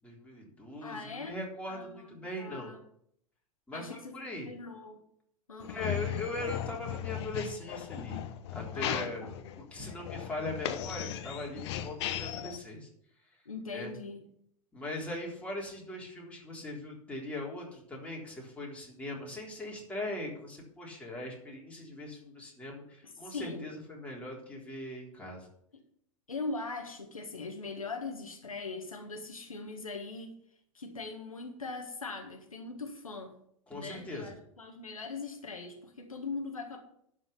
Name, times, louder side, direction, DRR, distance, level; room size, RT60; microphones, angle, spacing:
voice 1, 0.0-2.7 3.7-4.5 5.7-8.2 8.5-9.3 9.6-12.9 13.7-13.9 14.7-25.5 33.7-34.4, left 1 dB, 5° left, -3 dB, 3.7 m, -40 dB
voice 2, 0.8-1.4 1.7-2.8 3.7-5.0 5.5-6.0 8.7-9.3 13.5-14.2 23.0-23.7 26.3-30.3 30.8-33.3 33.7-36.8, left 3 dB, 80° left, 3 dB, 1.8 m, -41 dB
sound 1, 5.6-12.6, left 11 dB, 55° left, 1.0 m, -37 dB
11.5 x 5.0 x 8.3 m, 0.70 s
figure-of-eight pair, 95°, 17 cm